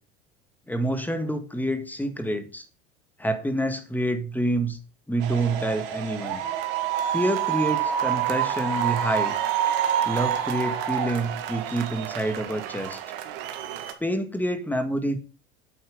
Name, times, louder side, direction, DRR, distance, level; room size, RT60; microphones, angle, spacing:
voice 1, 0.7-2.7 3.2-4.8 5.1-6.4 7.1-9.4 10.0-13.0 14.0-15.2, right 1 dB, 5° left, 8 dB, 1.9 m, -27 dB
sound 1, 5.2-13.9, right 10 dB, 60° right, 1.9 m, -28 dB
8.7 x 8.2 x 5.4 m, 0.34 s
hypercardioid pair, 80°, 30 cm